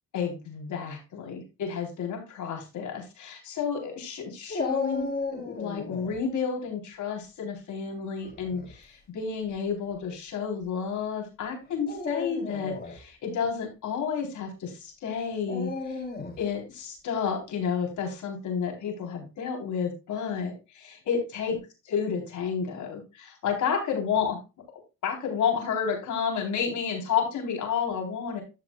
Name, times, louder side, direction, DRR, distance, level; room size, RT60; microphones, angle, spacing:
voice 1, 0.1-16.0 16.4-21.6 21.9-24.4 25.0-28.4, left 6 dB, 75° left, 2 dB, 4.0 m, -31 dB
Dog, 4.5-6.2 8.2-8.7 9.5-9.6 11.8-13.0 15.5-16.5, left 3 dB, 30° left, 3.3 m, -34 dB
14.5 x 6.1 x 2.4 m, 0.29 s
cardioid pair, 90°, 30 cm